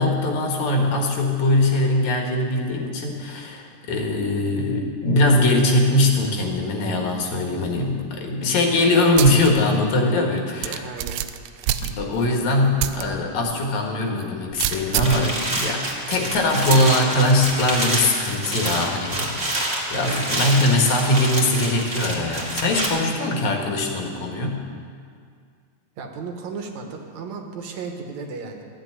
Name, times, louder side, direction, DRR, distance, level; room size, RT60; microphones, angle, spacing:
voice 1, 0.0-10.8 11.8-19.4 19.9-24.6, left 1 dB, 80° left, 1 dB, 3.0 m, -21 dB
voice 2, 8.4-8.8 10.6-11.2 26.0-28.7, right 4 dB, 75° right, 3 dB, 2.6 m, -35 dB
sound 1, 9.2-9.5 9.9-10.0 10.6-12.3 12.8-13.0 13.5-13.6 14.6-15.3 16.7-17.0, right 12 dB, 90° right, 2.0 m, -26 dB
sound 2, 14.5-22.9, right 1 dB, 25° right, 2.2 m, -27 dB
14.0 x 7.6 x 9.8 m, 2.2 s
omnidirectional pair, 3.3 m